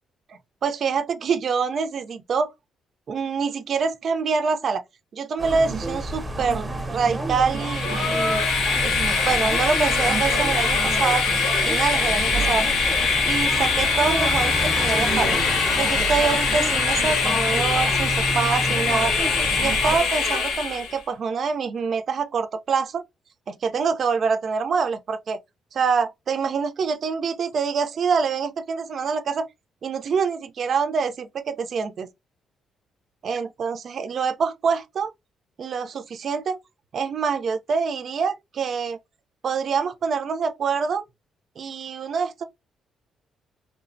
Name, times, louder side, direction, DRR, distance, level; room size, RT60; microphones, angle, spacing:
voice 1, 0.3-2.5 3.1-4.8 5.1-8.5 8.8-8.9 9.2-11.2 11.6-12.7 13.2-15.4 15.8-19.1 19.6-23.0 23.5-25.4 25.7-29.5 29.8-32.1 33.2-35.1 35.6-36.6 36.9-39.0 39.4-41.0 41.6-42.4, right 5 dB, 55° right, 0.4 m, -25 dB
sound 1, 5.4-20.0, right 2 dB, 20° right, 0.7 m, -30 dB
Train, 7.5-21.0, left 4 dB, 90° left, 0.7 m, -23 dB
3.2 x 2.0 x 2.5 m
cardioid pair, 90°, 0 cm